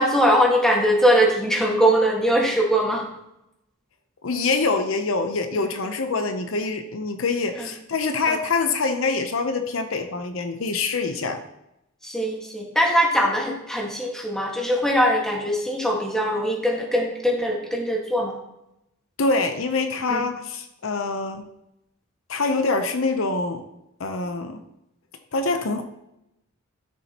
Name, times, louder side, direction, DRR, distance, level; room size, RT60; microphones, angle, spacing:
voice 1, 0.0-3.0 7.6-7.7 8.3-8.4 12.0-18.4 20.1-20.3, equal, 5° left, -1 dB, 1.6 m, -21 dB
voice 2, 4.2-11.4 19.2-21.5 22.3-23.6 24.0-24.6 25.3-25.8, left 3 dB, 65° left, 7 dB, 0.7 m, -25 dB
12.5 x 7.2 x 2.9 m, 0.86 s
head